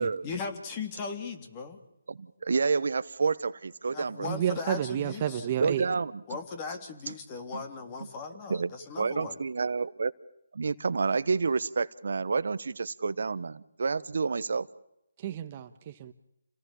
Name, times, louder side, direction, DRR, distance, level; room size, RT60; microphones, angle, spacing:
voice 1, 0.2-1.8 3.9-5.5 6.3-9.3, left 5 dB, 25° left, 3.3 m, -38 dB
voice 2, 2.1-4.3 5.6-6.2 7.1-7.2 7.5-7.6 8.5-8.7 9.0-10.1 10.5-14.7, right 4 dB, 60° right, 1.1 m, -29 dB
voice 3, 4.2-5.9 15.2-16.1, right 10 dB, 30° right, 1.3 m, -31 dB
29.0 x 18.0 x 8.7 m
figure-of-eight pair, 155°, 0 cm